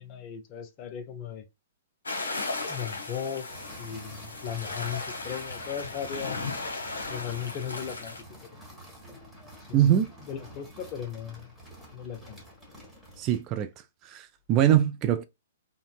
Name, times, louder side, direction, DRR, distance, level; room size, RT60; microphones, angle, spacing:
voice 1, 0.0-1.4 2.7-3.5 3.8-6.4 7.1-8.1 8.4-8.5 9.7-9.9 10.2-11.5 11.9-12.4, left 8 dB, 35° left, 0.6 m, -37 dB
sound 1, 2.1-8.2, left 3 dB, 70° left, 0.9 m, -36 dB
sound 2, 3.5-13.5, equal, ahead, 1.4 m, -49 dB
voice 2, 9.7-10.1 13.2-13.7 14.0-15.2, right 11 dB, 30° right, 0.3 m, -23 dB
3.9 x 2.1 x 2.3 m
figure-of-eight pair, 115°, 0 cm